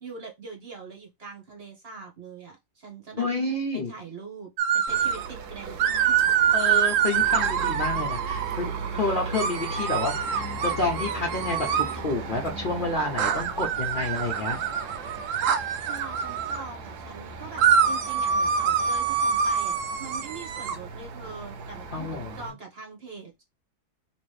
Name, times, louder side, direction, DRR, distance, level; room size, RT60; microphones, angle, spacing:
voice 1, 0.0-3.3 3.9-6.3 15.5-23.4, right 4 dB, 45° right, 1.1 m, -42 dB
voice 2, 3.2-3.9 6.5-14.6 21.9-22.4, left 2 dB, 40° left, 0.8 m, -29 dB
sound 1, 4.6-5.3 5.8-8.6 9.3-12.0 13.2-16.6 17.6-20.7, right 7 dB, 65° right, 0.9 m, -25 dB
sound 2, 4.9-22.5, right 4 dB, 90° right, 1.3 m, -37 dB
3.1 x 2.9 x 3.2 m
omnidirectional pair, 1.6 m